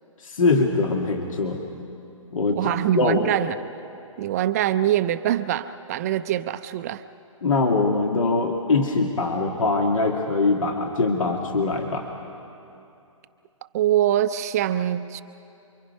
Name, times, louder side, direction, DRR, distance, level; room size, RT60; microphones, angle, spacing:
voice 1, 0.2-1.6 2.3-3.3 7.4-12.1, left 3 dB, 70° left, 2 dB, 2.0 m, -22 dB
voice 2, 2.5-3.6 4.2-7.0 13.7-15.2, right 12 dB, 30° right, 11 dB, 0.5 m, -23 dB
28.0 x 24.0 x 5.5 m, 2.8 s
hypercardioid pair, 145°, 17 cm